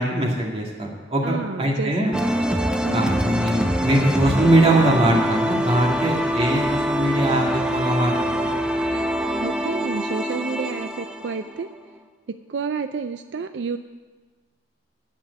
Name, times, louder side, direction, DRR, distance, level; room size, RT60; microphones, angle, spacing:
voice 1, 0.0-2.2 2.9-8.5, right 1 dB, 35° right, -1 dB, 2.2 m, -21 dB
voice 2, 1.2-2.2 2.8-3.2 9.4-11.7 12.5-13.8, right 5 dB, 70° right, 9 dB, 0.4 m, -30 dB
sound 1, 2.1-12.0, equal, 5° right, 0.7 m, -24 dB
11.0 x 7.6 x 8.1 m, 1.3 s
head